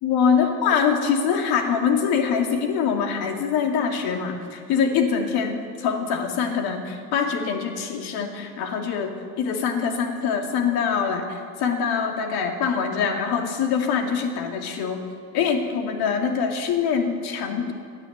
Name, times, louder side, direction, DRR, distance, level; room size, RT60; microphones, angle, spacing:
voice 1, 0.0-9.1 9.4-15.0 15.3-17.7, left 6 dB, 65° left, 3 dB, 2.6 m, -24 dB
17.5 x 9.5 x 8.1 m, 2.3 s
supercardioid pair, 90°, 40 cm